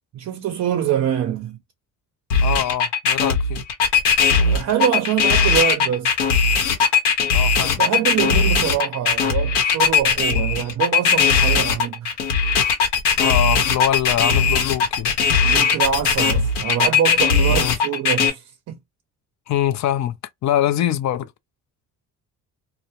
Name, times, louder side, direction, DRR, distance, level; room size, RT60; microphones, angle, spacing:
voice 1, 0.1-1.6 4.4-6.1 7.6-12.2 15.4-18.8, right 9 dB, 40° right, 0.5 m, -24 dB
sound 1, 2.3-18.3, left 5 dB, 75° left, 0.9 m, -18 dB
voice 2, 2.4-3.6 7.3-7.8 13.2-15.1 17.5-17.8 19.5-21.3, left 11 dB, 45° left, 0.5 m, -23 dB
2.1 x 2.1 x 2.8 m
hypercardioid pair, 55°, 41 cm